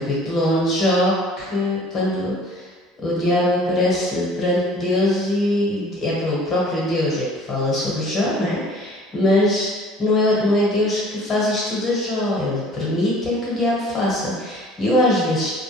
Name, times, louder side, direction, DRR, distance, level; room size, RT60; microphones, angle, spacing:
voice 1, 0.0-2.7 3.0-9.7 10.0-15.5, left 1 dB, 30° left, -6 dB, 1.1 m, -21 dB
2.2 x 2.1 x 3.1 m, 1.4 s
supercardioid pair, 100°, 0 cm